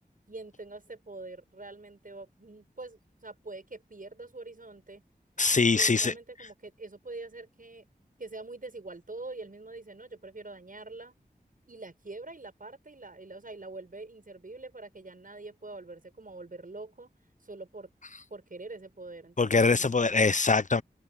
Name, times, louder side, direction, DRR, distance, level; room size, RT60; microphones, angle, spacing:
voice 1, 0.3-5.0 5.6-7.8 8.2-11.2 11.7-17.1 17.4-17.9 18.3-20.0, right 3 dB, 55° right, 7.2 m, -44 dB
voice 2, 5.4-6.1 19.4-20.8, left 4 dB, 50° left, 0.7 m, -23 dB
wide cardioid pair, 45°, 16 cm